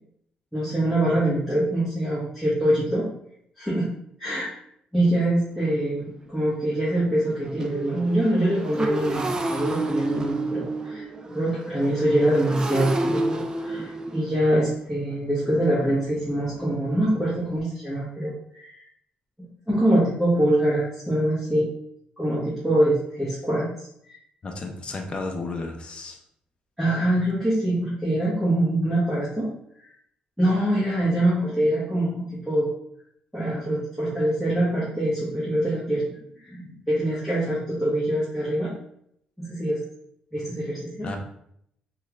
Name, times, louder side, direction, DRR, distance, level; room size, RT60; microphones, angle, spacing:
voice 1, 0.5-3.1 3.6-3.9 4.2-4.5 4.9-18.8 19.7-21.7 22.2-24.2 26.8-29.5 30.4-32.7 33.3-38.7 39.4-39.8 40.3-41.1, right 1 dB, ahead, -9 dB, 1.1 m, -24 dB
Motorcycle, 5.0-5.1 5.6-5.7 6.0-17.6, right 2 dB, 25° right, 0.4 m, -32 dB
voice 2, 24.4-26.2 41.0-41.2, left 3 dB, 35° left, 2 dB, 0.6 m, -33 dB
3.1 x 2.4 x 3.2 m, 0.71 s
cardioid pair, 105°, 3 cm